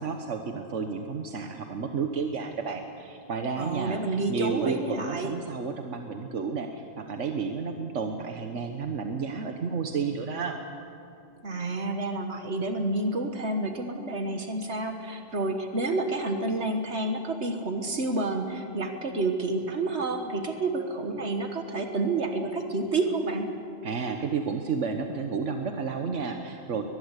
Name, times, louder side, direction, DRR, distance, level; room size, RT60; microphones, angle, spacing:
voice 1, 0.0-10.6 23.8-26.8, right 5 dB, 85° right, 5 dB, 1.5 m, -31 dB
voice 2, 3.6-5.3 11.4-23.5, right 2 dB, 65° right, 5 dB, 1.8 m, -29 dB
22.5 x 21.0 x 8.3 m, 2.7 s
omnidirectional pair, 1.2 m